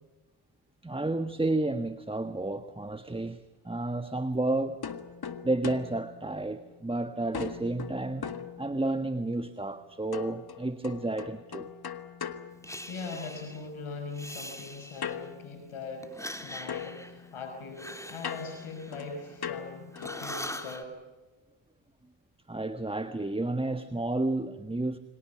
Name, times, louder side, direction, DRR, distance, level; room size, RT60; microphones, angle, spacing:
voice 1, 0.8-4.8 5.4-8.3 8.6-11.7 22.5-25.0, right 2 dB, 10° right, 1.4 m, -31 dB
sound 1, 4.8-6.9 7.3-9.2 10.1-13.3 15.0-16.4 16.7-20.3, left 7 dB, 50° left, 1.8 m, -41 dB
Breathing, 12.6-13.7 14.1-15.3 16.0-19.6 19.9-20.8, left 1 dB, 5° left, 3.2 m, -42 dB
voice 2, 12.9-16.1 16.4-21.0, left 4 dB, 75° left, 5.6 m, -41 dB
29.5 x 25.5 x 6.0 m
cardioid pair, 75°, 50 cm